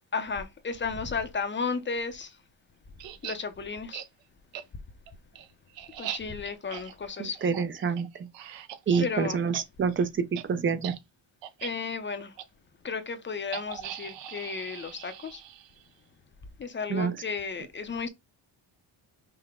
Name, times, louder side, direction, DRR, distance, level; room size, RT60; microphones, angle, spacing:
voice 1, 0.1-2.3 3.2-4.0 6.0-7.4 9.0-9.4 11.6-12.3 12.8-15.4 16.6-18.1, left 5 dB, 25° left, 0.5 m, -33 dB
sound 1, 3.0-3.4 3.9-4.1 4.5-4.6 5.1-9.1 9.4-9.6 9.9-10.0 10.3-10.4 10.8-11.0 11.4-11.7 12.4-12.5 13.5-15.9, right 11 dB, 65° right, 0.7 m, -40 dB
voice 2, 7.2-8.3 8.9-10.9 16.9-17.2, right 6 dB, 25° right, 0.4 m, -27 dB
5.8 x 2.1 x 3.5 m
cardioid pair, 140°, 47 cm